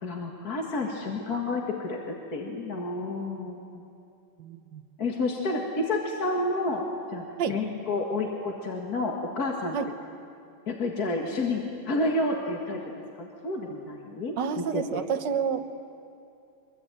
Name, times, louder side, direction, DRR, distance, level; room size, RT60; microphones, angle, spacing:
voice 1, 0.0-3.8 5.0-9.8 10.7-12.8 13.2-15.1, left 2 dB, 50° left, 1 dB, 2.3 m, -30 dB
voice 2, 4.4-4.8 7.4-7.5 9.7-9.8 14.4-15.7, right 7 dB, 60° right, 8 dB, 1.7 m, -29 dB
24.0 x 23.0 x 9.0 m, 2.6 s
omnidirectional pair, 2.3 m